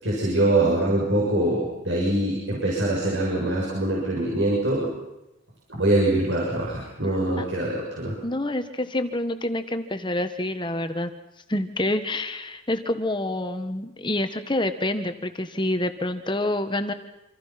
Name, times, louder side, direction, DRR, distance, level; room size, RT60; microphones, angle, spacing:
voice 1, 0.0-4.9 5.7-8.2, right 1 dB, 60° right, -3 dB, 7.3 m, -23 dB
voice 2, 8.2-11.1 11.5-16.9, left 1 dB, 20° left, 9 dB, 1.5 m, -27 dB
28.0 x 27.0 x 6.0 m, 0.92 s
head